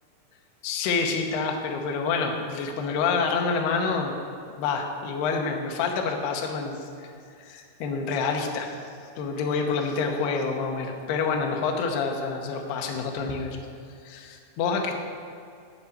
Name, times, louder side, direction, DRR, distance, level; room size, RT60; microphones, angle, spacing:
voice 1, 0.6-4.1 4.6-7.1 7.4-8.7 9.2-13.6 14.0-14.9, left 5 dB, 80° left, 2 dB, 2.4 m, -27 dB
8.3 x 6.5 x 8.4 m, 2.4 s
omnidirectional pair, 5.9 m